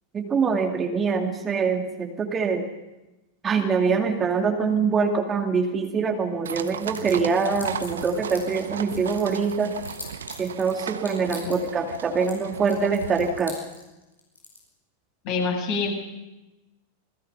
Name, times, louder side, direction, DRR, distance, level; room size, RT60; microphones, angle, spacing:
voice 1, 0.1-2.7 3.4-9.7 10.4-13.6, right 5 dB, 20° right, 3 dB, 2.4 m, -24 dB
sound 1, 6.5-13.4, right 7 dB, 65° right, 1.1 m, -36 dB
sound 2, 6.9-8.6 8.9-10.7 11.0-11.7 12.0-12.3 12.7-14.6, left 3 dB, 80° left, 6.8 m, -40 dB
voice 2, 15.2-15.9, left 4 dB, 45° left, 1 dB, 7.6 m, -26 dB
28.0 x 20.5 x 5.8 m, 1.0 s
figure-of-eight pair, 90°, 0 cm